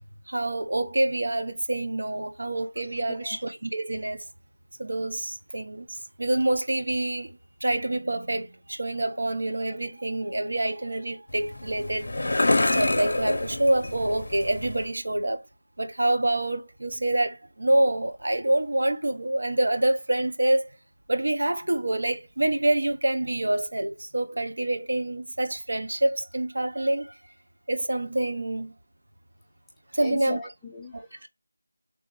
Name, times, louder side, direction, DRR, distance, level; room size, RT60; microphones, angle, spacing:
voice 1, 0.3-4.3 4.8-12.1 12.7-15.4 15.8-20.7 21.1-27.1 27.7-28.7 29.9-30.4 30.9-31.3, right 1 dB, 70° right, 0.7 m, -26 dB
sound 1, 11.3-14.9, left 2 dB, 55° left, 0.6 m, -27 dB
voice 2, 30.0-31.3, left 2 dB, 5° left, 0.5 m, -38 dB
3.5 x 3.0 x 2.9 m
figure-of-eight pair, 170°, 0 cm